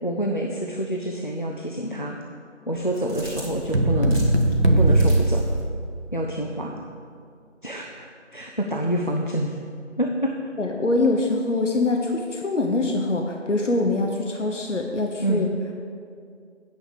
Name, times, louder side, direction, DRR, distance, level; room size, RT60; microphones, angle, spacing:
voice 1, 0.0-2.2 2.7-4.3 4.8-5.4 6.1-6.8 7.6-9.5 10.0-10.3 15.2-15.4, right 1 dB, 45° left, 1 dB, 0.6 m, -27 dB
sound 1, 2.7-5.6, equal, 40° right, 2.4 m, -37 dB
sound 2, 3.7-6.2, right 1 dB, 60° right, 1.0 m, -20 dB
voice 2, 10.6-15.5, left 2 dB, 75° left, 2 dB, 1.0 m, -24 dB
9.2 x 5.6 x 6.7 m, 2.4 s
figure-of-eight pair, 180°, 37 cm